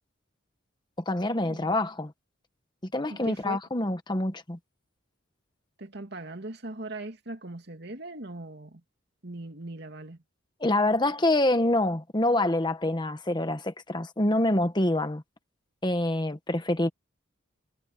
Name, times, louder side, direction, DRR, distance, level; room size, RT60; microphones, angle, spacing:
voice 1, 1.1-2.1 2.8-4.6 10.6-15.2 15.8-16.9, left 1 dB, 25° left, 1.3 m, -26 dB
voice 2, 3.1-3.6 5.8-8.8 9.2-10.2, right 2 dB, 55° right, 2.5 m, -40 dB
head